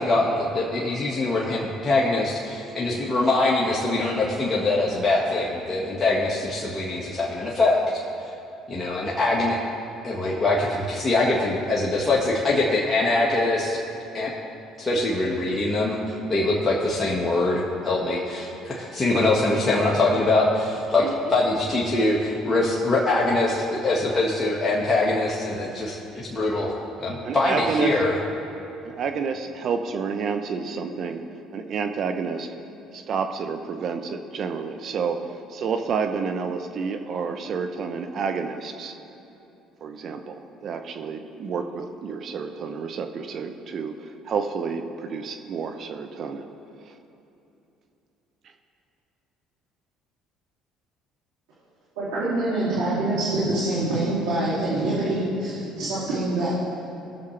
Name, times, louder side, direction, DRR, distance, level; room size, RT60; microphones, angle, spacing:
voice 1, 0.0-7.8 8.7-9.6 10.0-13.8 14.1-14.3 14.8-26.7 27.0-28.1, left 2 dB, 30° left, -5 dB, 1.7 m, -23 dB
voice 2, 27.2-27.9 28.8-31.2 31.5-32.5 32.9-35.2 35.5-38.9 39.8-46.5 46.9-47.0, right 5 dB, 55° right, 6 dB, 0.8 m, -29 dB
voice 3, 52.0-56.5, right 2 dB, 75° right, -9 dB, 2.6 m, -25 dB
20.5 x 7.1 x 3.3 m, 2.9 s
hypercardioid pair, 65°, 0 cm